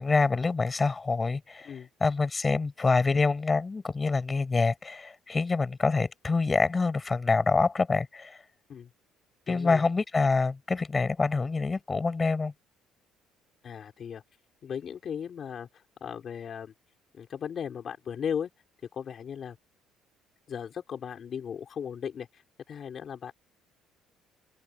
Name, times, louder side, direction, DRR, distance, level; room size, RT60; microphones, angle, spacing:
voice 1, 0.0-1.7 2.0-8.4 9.5-12.5, left 4 dB, 20° left, 5.9 m, -26 dB
voice 2, 9.5-9.8 13.6-14.2 14.6-16.7 17.1-18.5 18.9-19.6 20.5-23.3, left 8 dB, 40° left, 4.5 m, -37 dB
open air
cardioid pair, 135°, 0 cm